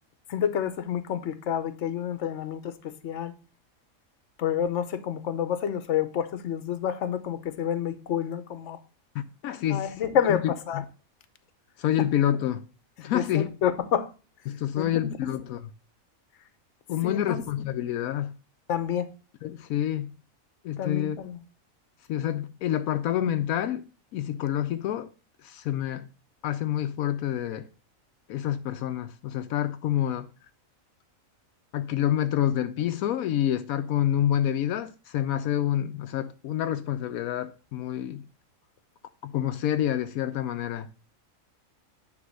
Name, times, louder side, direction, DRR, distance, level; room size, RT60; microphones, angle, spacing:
voice 1, 0.3-3.3 4.4-8.8 9.7-10.8 12.0-12.1 13.1-14.1 14.8-15.1 17.0-17.4 18.7-19.1 20.8-21.4, left 9 dB, 60° left, 1.1 m, -29 dB
voice 2, 9.1-9.9 10.3-10.4 11.8-12.6 13.0-13.5 14.5-15.6 16.9-18.3 19.4-20.1 20.6-21.2 22.1-23.8 24.1-25.1 25.4-26.0 26.4-27.7 28.3-30.3 31.7-38.2 39.2-40.9, left 11 dB, 85° left, 1.0 m, -28 dB
9.5 x 3.4 x 6.3 m
omnidirectional pair, 1.5 m